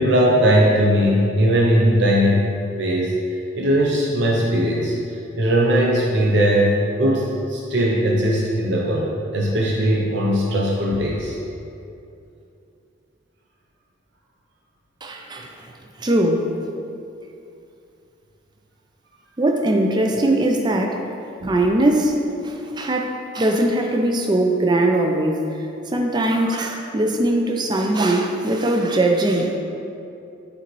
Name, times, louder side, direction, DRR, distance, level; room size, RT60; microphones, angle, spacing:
voice 1, 0.0-2.5 2.8-3.1 3.5-4.9 5.4-6.7 7.0-11.3 21.4-21.5, equal, 60° right, -3 dB, 0.6 m, -19 dB
voice 2, 15.0-15.5 16.0-16.4 19.4-21.0 21.5-22.2 22.4-25.4 25.9-29.6, right 1 dB, 20° right, 2 dB, 0.4 m, -20 dB
8.5 x 4.0 x 3.1 m, 2.6 s
head